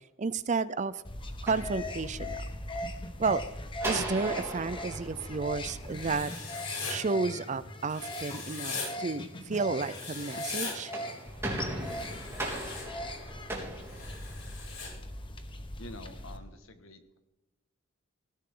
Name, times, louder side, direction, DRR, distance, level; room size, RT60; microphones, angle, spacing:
voice 1, 0.2-1.0 1.4-2.4 3.2-3.4 3.8-6.3 6.9-10.9, right 4 dB, 35° right, 16 dB, 0.5 m, -31 dB
sound 1, 1.0-16.4, left 1 dB, 25° left, 1.3 m, -40 dB
sound 2, 1.3-2.5 3.8-6.3 10.7-14.7, right 1 dB, 10° right, 3.7 m, -38 dB
Writing, 5.9-7.0 7.9-8.9 9.8-10.7 11.8-12.8 13.9-14.9, left 4 dB, 85° left, 6.9 m, -39 dB
voice 2, 15.8-17.2, left 1 dB, 65° left, 7 dB, 1.8 m, -47 dB
20.0 x 16.0 x 3.8 m, 1.0 s
head